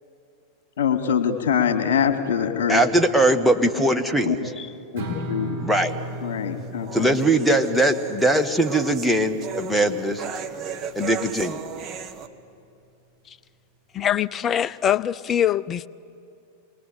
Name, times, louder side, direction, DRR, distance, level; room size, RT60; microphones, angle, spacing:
voice 1, 0.8-2.8 4.3-4.4 4.9-5.6 6.2-7.1, left 8 dB, 55° left, 2.2 m, -23 dB
voice 2, 2.7-4.4 5.6-5.9 6.9-10.2 10.9-11.6, right 1 dB, ahead, 1.5 m, -20 dB
Strum, 5.0-11.2, equal, 60° right, 5.4 m, -37 dB
sound 1, 5.9-12.3, right 7 dB, 30° right, 1.4 m, -36 dB
voice 3, 13.9-15.9, left 9 dB, 25° left, 0.6 m, -23 dB
27.5 x 22.0 x 8.8 m
figure-of-eight pair, 90°, 0 cm